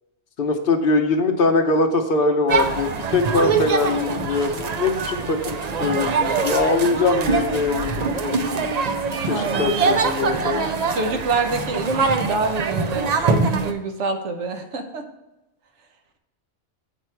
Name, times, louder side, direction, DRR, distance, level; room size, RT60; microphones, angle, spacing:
voice 1, 0.4-8.0 8.2-8.4 9.3-10.7, left 3 dB, 55° left, 4 dB, 0.8 m, -22 dB
sound 1, 2.5-13.7, right 4 dB, 50° right, 0.5 m, -23 dB
voice 2, 9.3-13.1 13.5-15.0, right 3 dB, 75° right, 6 dB, 1.2 m, -27 dB
8.2 x 4.5 x 4.5 m, 1.0 s
omnidirectional pair, 1.2 m